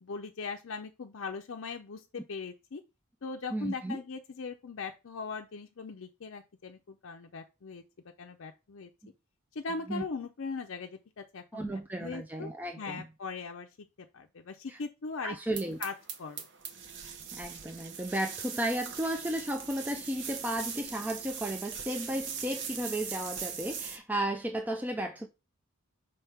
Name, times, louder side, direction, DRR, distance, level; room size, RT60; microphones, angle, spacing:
voice 1, 0.0-2.8 3.2-7.8 8.2-8.9 9.5-12.5 12.8-13.7 14.0-15.4 15.8-15.9 16.2-16.5, left 4 dB, 60° left, 0.5 m, -40 dB
voice 2, 3.5-4.0 9.9-10.0 11.5-13.0 14.7-14.8 15.2-15.8 17.3-25.3, right 1 dB, 10° right, 0.4 m, -34 dB
sound 1, 15.5-24.0, right 7 dB, 55° right, 0.8 m, -40 dB
5.3 x 3.5 x 5.6 m
head